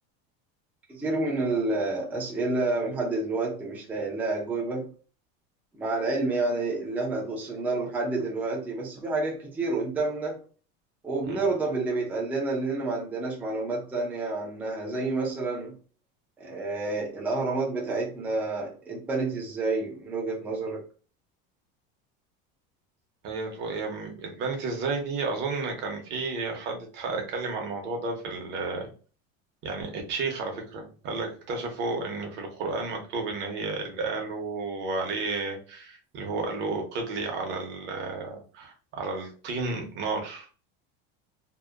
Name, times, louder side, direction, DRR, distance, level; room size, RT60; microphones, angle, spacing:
voice 1, 0.9-4.9 5.7-10.4 11.0-15.7 16.4-20.8, right 3 dB, 5° right, 0.4 m, -29 dB
voice 2, 23.2-28.9 29.6-40.5, right 3 dB, 40° right, 0.7 m, -32 dB
2.7 x 2.0 x 2.3 m
cardioid pair, 165°, 29 cm